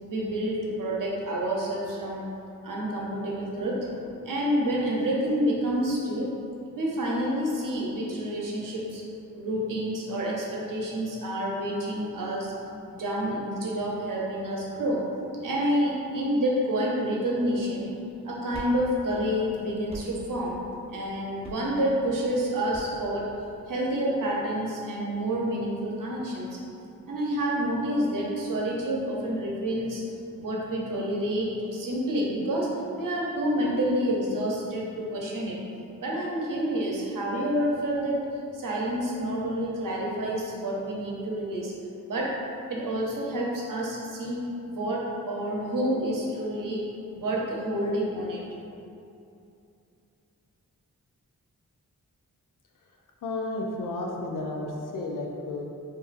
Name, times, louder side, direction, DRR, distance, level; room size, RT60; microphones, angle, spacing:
voice 1, 0.0-2.2 2.6-6.3 6.8-9.0 9.4-12.5 12.9-15.0 15.4-17.9 18.2-20.6 20.9-23.3 23.7-26.5 27.1-30.0 30.3-32.7 33.0-35.6 36.0-38.3 38.5-41.7 42.1-42.3 42.7-46.8 47.1-48.4, equal, 70° right, -3 dB, 0.7 m, -28 dB
sound 1, 17.9-23.9, equal, 20° right, 0.6 m, -45 dB
voice 2, 53.2-55.6, left 2 dB, 70° left, 0 dB, 0.5 m, -32 dB
3.9 x 2.5 x 2.5 m, 2.6 s
cardioid pair, 50°, 34 cm